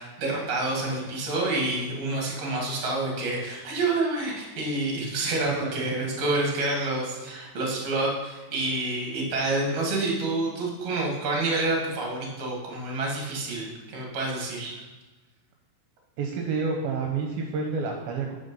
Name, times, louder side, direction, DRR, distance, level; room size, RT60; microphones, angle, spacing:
voice 1, 0.0-14.8, right 2 dB, 45° right, -1 dB, 2.7 m, -28 dB
voice 2, 5.4-6.1 16.2-18.4, right 4 dB, 75° right, 1 dB, 2.5 m, -29 dB
9.0 x 5.9 x 5.4 m, 1.2 s
omnidirectional pair, 4.6 m